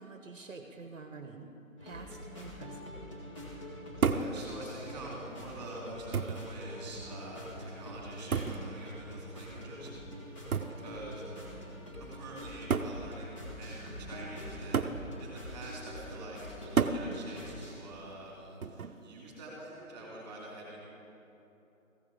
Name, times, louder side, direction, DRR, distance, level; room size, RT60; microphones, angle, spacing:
voice 1, 0.0-1.5 1.8-2.9, right 4 dB, 65° right, 5 dB, 1.0 m, -47 dB
sound 1, 1.8-17.7, equal, 20° left, 1.7 m, -45 dB
voice 2, 4.0-9.9 10.2-10.3 10.7-11.3 12.0-20.8, right 2 dB, 15° right, -3 dB, 2.4 m, -46 dB
sound 2, 4.0-4.4 5.4-5.5 6.1-6.5 8.3-8.7 10.5-10.8 11.9-12.0 12.7-13.0 14.7-15.0 16.8-17.1 18.6-19.0, right 5 dB, 80° right, 0.8 m, -30 dB
15.0 x 10.5 x 3.8 m, 3.0 s
figure-of-eight pair, 160°, 42 cm